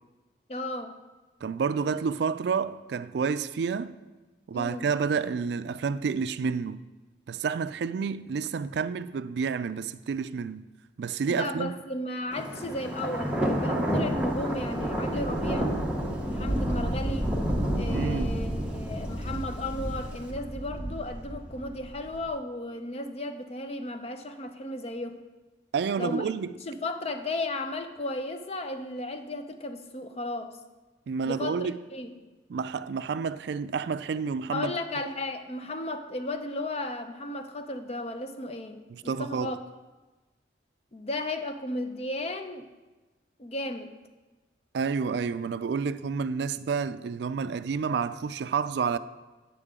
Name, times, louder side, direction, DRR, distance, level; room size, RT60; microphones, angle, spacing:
voice 1, 0.5-1.0 4.5-4.9 11.3-15.7 16.3-17.3 17.8-25.2 26.0-26.3 26.7-30.6 31.3-32.1 34.5-39.6 40.9-42.7 43.4-43.9, left 2 dB, 35° left, 0.6 m, -34 dB
voice 2, 1.4-4.0 4.5-6.9 7.3-10.7 11.0-11.7 17.9-18.3 25.7-26.5 31.1-31.8 32.5-34.7 38.9-39.5 44.7-49.0, right 5 dB, 65° right, 0.3 m, -29 dB
Thunder, 12.3-22.2, equal, 5° right, 1.0 m, -30 dB
8.8 x 8.3 x 3.7 m
head